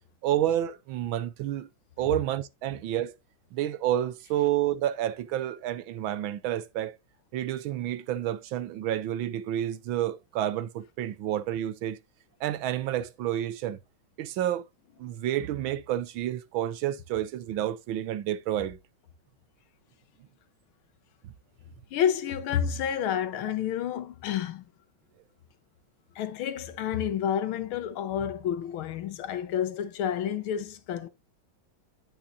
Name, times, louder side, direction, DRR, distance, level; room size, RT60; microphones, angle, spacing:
voice 1, 0.2-1.7 2.0-3.1 3.5-6.9 7.3-12.0 12.4-13.8 14.2-14.6 15.0-18.8 21.2-21.3, right 12 dB, 75° right, 1.4 m, -29 dB
voice 2, 21.9-24.7 26.2-31.1, left 9 dB, 80° left, 1.8 m, -29 dB
11.0 x 5.7 x 2.6 m
omnidirectional pair, 2.3 m